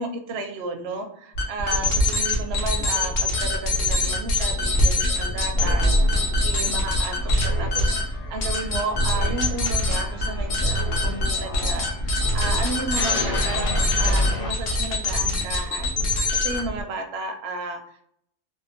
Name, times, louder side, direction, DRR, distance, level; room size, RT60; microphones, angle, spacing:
voice 1, 0.0-18.0, right 3 dB, 65° right, 5 dB, 0.7 m, -33 dB
sound 1, 1.3-16.8, left 2 dB, 75° left, 1.1 m, -24 dB
sound 2, 5.6-15.0, equal, 45° left, 0.4 m, -27 dB
2.8 x 2.1 x 2.6 m, 0.68 s
omnidirectional pair, 1.4 m